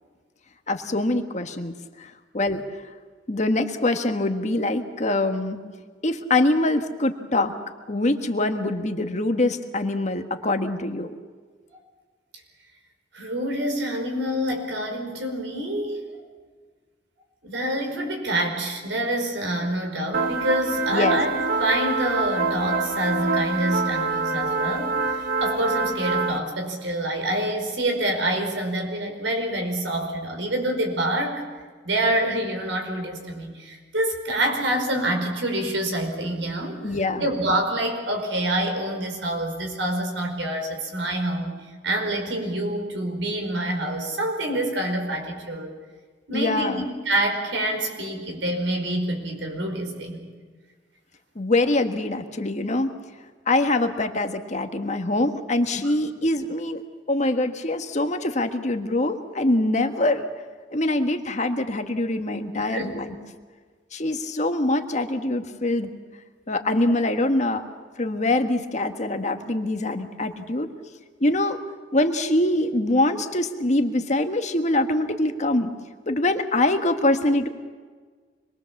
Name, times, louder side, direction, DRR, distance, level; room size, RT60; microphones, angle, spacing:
voice 1, 0.7-2.6 3.3-5.6 6.0-7.5 7.9-11.2 20.9-21.2 36.8-37.2 46.3-46.8 51.3-53.0 53.5-56.8 57.1-60.3 60.7-63.1 63.9-65.9 66.5-67.6 68.0-70.7 71.2-71.6 71.9-75.7 76.1-77.5, left 2 dB, 40° left, 6 dB, 1.6 m, -24 dB
voice 2, 13.1-16.2 17.4-21.3 21.6-31.4 31.8-36.8 37.2-41.6 41.8-45.7 46.3-50.2 55.7-55.8 62.6-63.0, right 1 dB, 80° right, 4 dB, 5.2 m, -26 dB
sound 1, 20.1-26.4, right 4 dB, 50° right, 1.3 m, -25 dB
26.0 x 22.0 x 7.3 m, 1.5 s
head